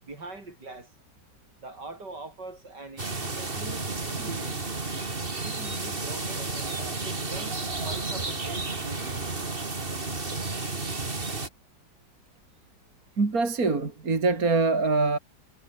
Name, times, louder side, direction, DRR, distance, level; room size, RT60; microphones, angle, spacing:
voice 1, 0.0-0.9 1.6-4.6 5.4-7.6 7.8-9.3, right 3 dB, 70° right, 5.9 m, -43 dB
sound 1, 3.0-11.5, right 3 dB, 30° right, 2.7 m, -32 dB
voice 2, 13.2-15.2, right 3 dB, 50° right, 3.5 m, -24 dB
omnidirectional pair, 1.9 m